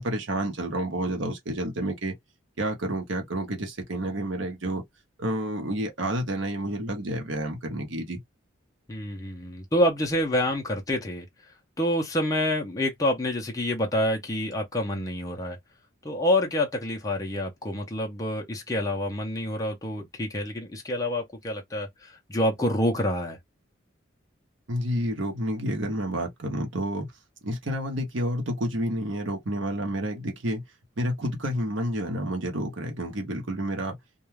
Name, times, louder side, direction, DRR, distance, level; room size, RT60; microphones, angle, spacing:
voice 1, 0.0-2.1 2.6-4.8 5.2-8.2 24.7-27.1 27.4-30.6 31.0-34.0, right 1 dB, 65° right, 0.8 m, -29 dB
voice 2, 8.9-11.3 11.8-15.6 16.0-23.4, left 1 dB, 15° left, 0.5 m, -27 dB
2.3 x 2.2 x 3.1 m
head